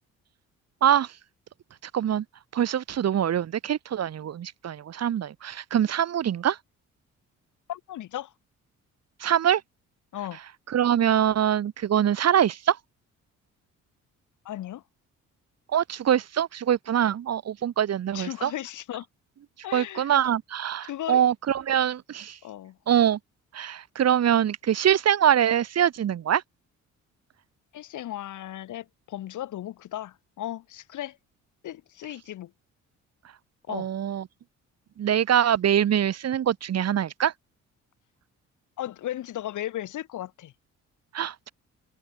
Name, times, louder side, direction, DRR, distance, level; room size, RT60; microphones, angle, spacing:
voice 1, 0.8-1.2 1.8-2.3 2.5-6.6 9.2-9.6 10.7-12.8 15.7-18.5 19.7-22.4 22.9-23.2 23.5-26.4 33.7-34.3 35.0-37.3 41.1-41.5, right 10 dB, 55° right, 1.7 m, -24 dB
voice 2, 7.7-8.3 10.1-10.4 14.4-14.8 18.1-19.1 19.6-20.1 20.9-21.2 22.4-22.8 27.7-31.2 31.6-32.5 33.7-33.9 38.8-40.5, left 13 dB, 80° left, 6.4 m, -36 dB
cardioid pair, 90°, 30 cm